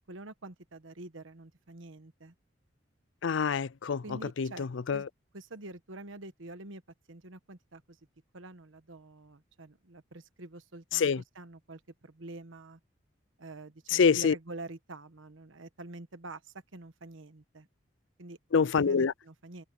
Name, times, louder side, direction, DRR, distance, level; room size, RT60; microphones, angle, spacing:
voice 1, 0.0-2.3 4.0-5.1 5.3-6.8 7.1-8.0 8.3-12.8 13.4-17.7 18.2-18.4 18.8-19.6, right 2 dB, 80° right, 1.3 m, -46 dB
voice 2, 3.2-4.0 4.4-5.0 10.9-11.2 13.9-14.3 18.5-19.1, left 6 dB, 65° left, 0.5 m, -26 dB
head